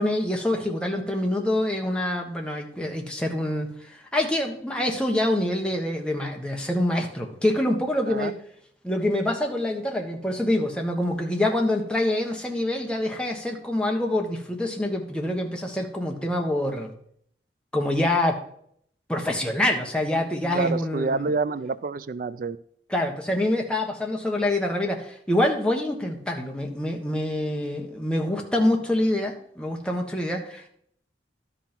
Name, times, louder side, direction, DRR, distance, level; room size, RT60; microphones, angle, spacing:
voice 1, 0.0-8.4 8.8-16.9 17.7-18.4 19.1-21.3 22.9-30.7, left 1 dB, 5° left, 1 dB, 1.3 m, -26 dB
voice 2, 20.5-22.6, right 4 dB, 50° right, 15 dB, 0.4 m, -28 dB
12.5 x 5.5 x 4.4 m, 0.66 s
head